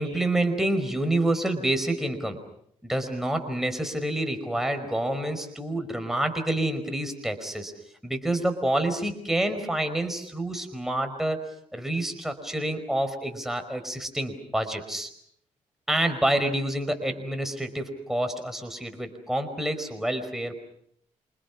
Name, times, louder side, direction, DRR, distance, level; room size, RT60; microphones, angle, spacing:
voice 1, 0.0-2.4 2.8-7.7 8.0-15.1 15.9-20.6, right 1 dB, 5° right, 6 dB, 5.1 m, -28 dB
28.5 x 27.5 x 6.1 m, 0.68 s
cardioid pair, 75°, 14 cm